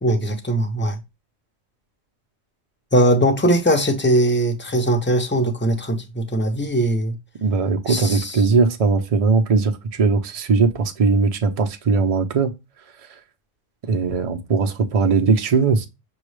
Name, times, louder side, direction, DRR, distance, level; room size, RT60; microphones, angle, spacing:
voice 1, 0.0-1.0 2.9-7.1 7.9-8.4, right 1 dB, 15° left, 0.4 m, -20 dB
voice 2, 7.4-12.5 13.9-15.9, right 4 dB, 60° right, 0.3 m, -19 dB
6.2 x 2.3 x 3.1 m
omnidirectional pair, 1.4 m